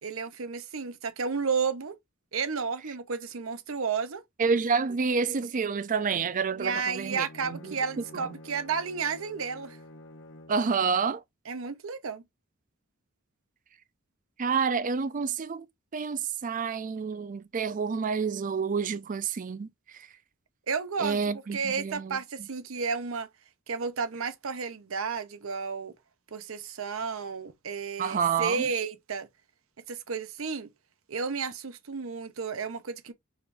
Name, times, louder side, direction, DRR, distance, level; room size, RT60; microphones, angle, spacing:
voice 1, 0.0-1.9 2.3-4.2 6.5-9.8 11.5-12.2 20.7-21.2 21.5-23.3 23.7-25.9 26.3-29.3 29.9-30.7 31.1-33.1, right 5 dB, 80° right, 0.7 m, -32 dB
voice 2, 4.4-7.8 8.1-8.3 10.5-11.2 14.4-15.7 15.9-19.7 21.0-22.2 28.0-28.7, right 5 dB, 40° right, 0.4 m, -28 dB
Bowed string instrument, 6.9-10.7, left 1 dB, 65° left, 0.7 m, -49 dB
4.9 x 2.6 x 3.3 m
head